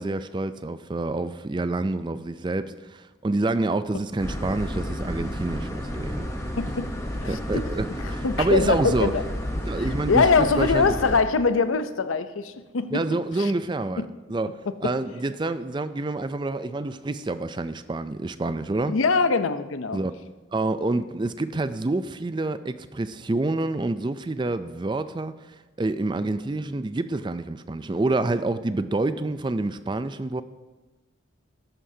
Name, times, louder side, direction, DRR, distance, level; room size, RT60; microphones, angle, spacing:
voice 1, 0.0-6.3 7.3-9.1 9.5-11.0 12.9-19.0 19.9-20.2 20.5-25.5 25.8-30.4, right 2 dB, 25° right, 12 dB, 0.4 m, -27 dB
sound 1, 4.2-11.2, equal, 15° left, 0.9 m, -31 dB
voice 2, 6.6-6.9 7.2-7.6 8.2-9.2 9.8-13.5 14.7-14.9 18.9-20.0, left 4 dB, 90° left, 12 dB, 0.6 m, -23 dB
13.5 x 11.5 x 2.8 m, 1.2 s
head